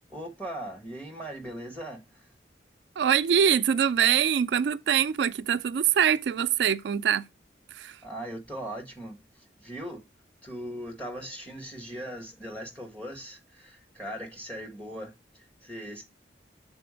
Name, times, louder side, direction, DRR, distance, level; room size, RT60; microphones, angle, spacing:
voice 1, 0.1-2.3 8.0-10.1 10.4-16.0, right 1 dB, 10° left, 1.6 m, -39 dB
voice 2, 3.0-7.3 7.7-8.0, right 8 dB, 80° right, 0.4 m, -24 dB
6.7 x 4.1 x 5.0 m
head